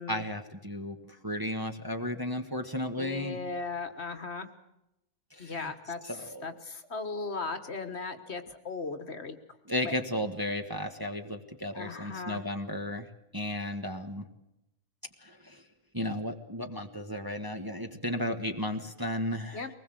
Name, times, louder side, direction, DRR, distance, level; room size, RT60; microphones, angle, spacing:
voice 1, 0.1-3.4 5.3-5.7 6.1-6.5 9.6-13.1 13.3-14.2 15.2-15.6 15.9-19.6, left 1 dB, 15° right, 4 dB, 1.4 m, -34 dB
voice 2, 3.0-4.5 5.4-9.6 9.8-10.0 11.7-12.4 19.5-19.7, left 4 dB, 50° left, 8 dB, 1.6 m, -37 dB
23.0 x 20.0 x 7.7 m, 0.86 s
omnidirectional pair, 1.5 m